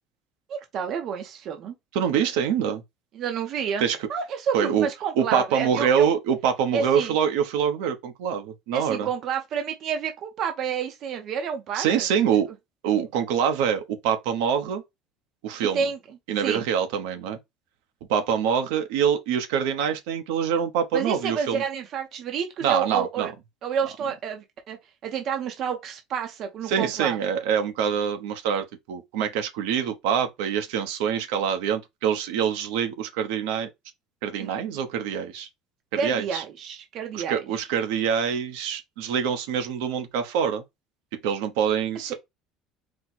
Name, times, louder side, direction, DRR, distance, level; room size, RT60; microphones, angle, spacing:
voice 1, 0.5-1.7 3.1-3.8 4.1-6.1 6.7-7.1 8.7-12.2 15.7-16.0 16.4-16.6 20.9-23.3 23.6-27.2 34.4-34.6 36.0-37.4 42.1-42.2, right 7 dB, 35° right, 0.7 m, -29 dB
voice 2, 1.9-2.8 3.8-4.0 4.5-4.9 5.2-9.1 11.7-12.5 12.8-14.8 15.4-15.9 16.3-17.4 18.1-21.6 22.6-23.3 26.7-33.7 34.2-35.5 35.9-36.4 37.1-40.6 41.2-42.1, right 8 dB, 80° right, 0.9 m, -25 dB
4.3 x 2.2 x 4.3 m
cardioid pair, 175°, 0 cm